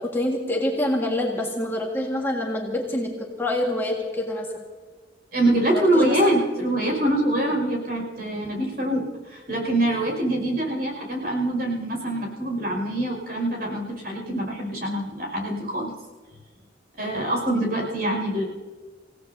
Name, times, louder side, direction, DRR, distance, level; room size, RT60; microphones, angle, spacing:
voice 1, 0.0-4.6 5.7-6.3, left 1 dB, 10° left, -2 dB, 1.8 m, -26 dB
voice 2, 5.3-15.9 17.0-18.4, right 1 dB, 55° right, 0 dB, 5.7 m, -24 dB
28.5 x 17.0 x 2.8 m, 1.4 s
head